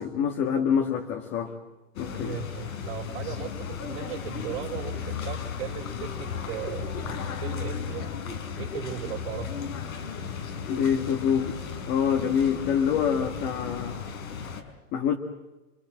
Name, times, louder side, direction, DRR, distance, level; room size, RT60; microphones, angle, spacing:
voice 1, 0.0-1.6 2.0-2.4 10.7-11.6 11.9-14.0 14.9-15.1, left 7 dB, 25° left, 4 dB, 1.9 m, -26 dB
Square Piazza Plaza with few people - Stereo Ambience, 2.0-14.6, left 6 dB, 85° left, 5.4 m, -35 dB
voice 2, 2.2-7.1 7.4-8.0 8.5-9.7, right 11 dB, 50° right, -2 dB, 4.3 m, -37 dB
29.0 x 24.0 x 7.7 m, 1.1 s
supercardioid pair, 165°, 40 cm